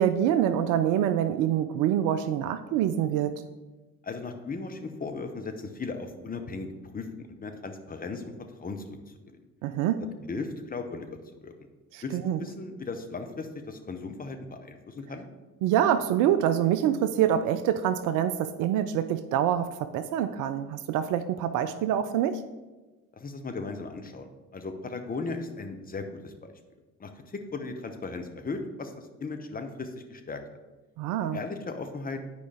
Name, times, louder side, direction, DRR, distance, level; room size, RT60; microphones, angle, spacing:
voice 1, 0.0-3.3 9.6-10.0 11.9-12.4 15.6-22.4 31.0-31.4, right 10 dB, 50° right, 12 dB, 0.5 m, -25 dB
voice 2, 4.0-8.3 8.6-9.0 9.3-9.4 10.3-11.1 11.4-11.5 12.0-15.2 23.1-26.5 27.0-30.4 31.3-32.2, left 3 dB, 20° left, 6 dB, 0.8 m, -37 dB
9.3 x 4.8 x 3.4 m, 1.2 s
figure-of-eight pair, 55°, 41 cm